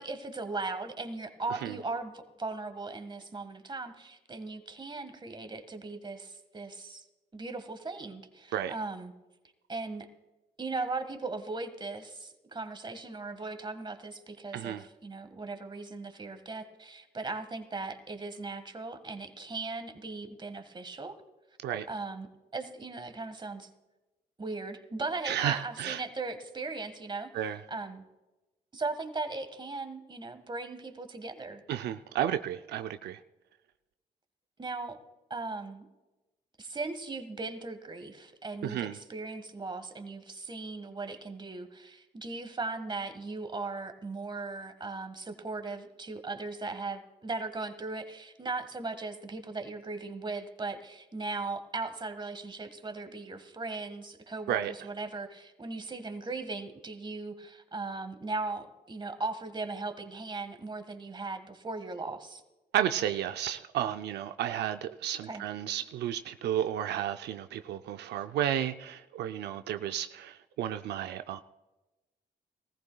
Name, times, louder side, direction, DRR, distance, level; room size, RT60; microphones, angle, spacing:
voice 1, 0.0-2.1 2.4-7.0 7.3-9.1 9.7-10.1 10.6-21.2 21.9-22.3 22.5-23.7 24.4-27.3 27.7-28.0 28.7-31.6 34.6-35.0 35.3-35.8 36.6-62.4 65.3-65.4, right 3 dB, 25° right, 8 dB, 1.6 m, -38 dB
voice 2, 14.5-14.9 21.6-21.9 25.2-26.0 27.3-27.6 31.7-33.2 38.6-39.0 54.5-54.7 62.7-71.4, right 11 dB, 85° right, 8 dB, 0.5 m, -32 dB
19.0 x 14.5 x 2.3 m, 1.1 s
cardioid pair, 80°, 17 cm